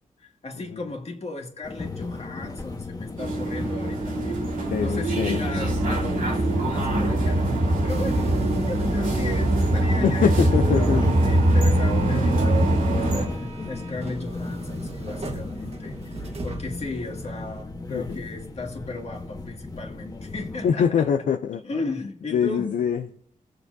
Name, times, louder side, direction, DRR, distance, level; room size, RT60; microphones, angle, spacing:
voice 1, 0.2-7.5 7.8-10.3 10.6-21.1 21.6-22.7, left 3 dB, 50° left, 2.1 m, -36 dB
sound 1, 1.6-20.7, left 3 dB, 25° left, 1.2 m, -36 dB
sound 2, 3.2-13.3, right 1 dB, 85° right, 2.4 m, -22 dB
voice 2, 4.7-5.4 10.0-11.0 17.9-18.2 20.6-21.6 22.3-23.1, left 7 dB, 80° left, 0.5 m, -23 dB
sound 3, 7.9-17.6, right 2 dB, 50° right, 1.4 m, -40 dB
18.5 x 6.9 x 2.7 m
cardioid pair, 65°, 14 cm